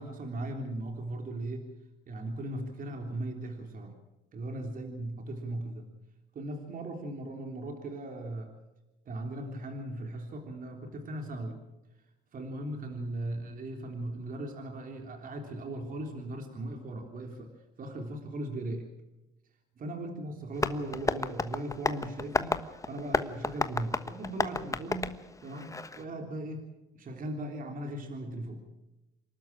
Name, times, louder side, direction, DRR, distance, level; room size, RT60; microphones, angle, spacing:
voice 1, 0.0-1.7 2.1-4.0 4.3-5.9 6.4-8.5 9.1-11.6 12.3-17.5 17.8-18.9 19.8-22.6 22.9-25.1 25.4-26.7 26.9-28.6, right 1 dB, 45° right, 3 dB, 3.6 m, -38 dB
Tap, 20.6-26.0, left 3 dB, 15° left, 1.2 m, -33 dB
28.0 x 12.5 x 9.0 m, 1.0 s
supercardioid pair, 90°, 20 cm